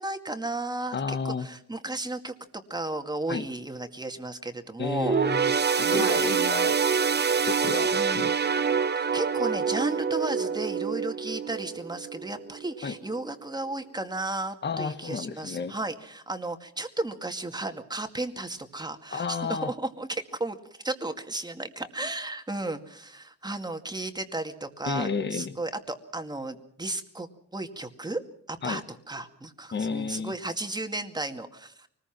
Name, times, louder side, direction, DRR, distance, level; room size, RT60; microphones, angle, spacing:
voice 1, 0.0-2.3 2.7-5.2 5.8-6.3 7.9-8.3 9.0-20.6 20.8-28.2 28.5-28.8 29.1-31.9, right 2 dB, 15° right, 6 dB, 2.2 m, -34 dB
voice 2, 0.9-1.5 3.3-3.4 4.8-5.5 5.8-6.8 7.5-8.4 8.7-8.8 12.8-13.0 14.6-15.7 19.1-19.7 24.9-25.6 28.6-28.8 29.7-30.3, left 5 dB, 35° left, 9 dB, 1.4 m, -31 dB
sound 1, 5.0-12.7 13.1-13.3 14.2-14.3, right 6 dB, 35° right, 1.1 m, -26 dB
24.5 x 20.0 x 6.1 m, 0.64 s
cardioid pair, 90°, 30 cm